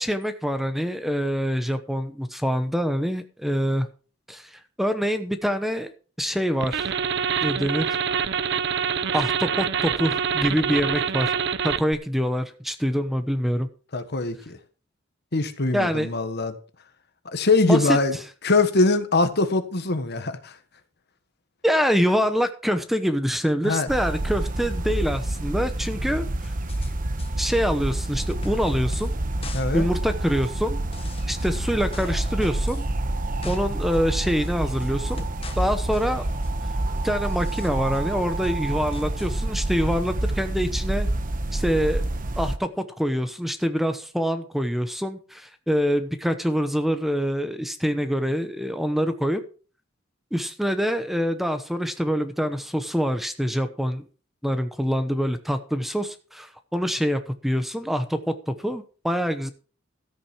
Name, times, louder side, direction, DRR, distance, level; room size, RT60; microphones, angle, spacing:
voice 1, 0.0-3.9 4.3-5.9 6.2-7.0 7.4-8.0 9.1-11.3 11.6-13.7 15.7-16.1 17.7-18.0 21.6-26.5 27.4-29.1 29.7-30.8 31.3-32.9 33.4-35.2 35.6-36.2 37.0-41.1 41.5-42.0 42.4-49.4 50.3-54.1 54.4-59.5, equal, ahead, 0.9 m, -25 dB
sound 1, 6.6-11.9, right 7 dB, 60° right, 0.6 m, -25 dB
voice 2, 13.9-14.6 15.3-16.6 17.2-18.2 18.4-20.6 23.6-23.9 29.5-29.9, left 3 dB, 55° left, 1.5 m, -22 dB
sound 2, 23.9-42.6, right 1 dB, 45° right, 1.1 m, -28 dB
sound 3, 26.4-26.9 27.2-27.3 27.9-28.0 28.3-29.2 29.4-29.6 29.9-30.0 30.4-30.5 30.9-32.9 33.2-33.6 33.9-34.0 34.4-35.7 35.9-36.6 37.2-38.0 38.4-39.3, left 2 dB, 30° left, 1.6 m, -41 dB
13.5 x 8.6 x 4.6 m
head